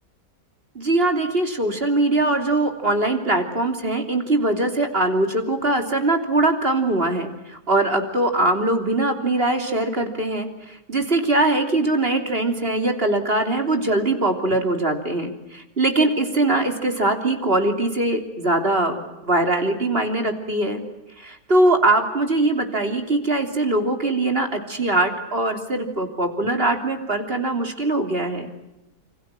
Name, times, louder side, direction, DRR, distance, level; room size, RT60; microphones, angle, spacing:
voice 1, 0.8-20.8 21.2-28.5, right 2 dB, 35° right, 5 dB, 3.4 m, -22 dB
28.5 x 26.5 x 7.6 m, 0.92 s
omnidirectional pair, 1.7 m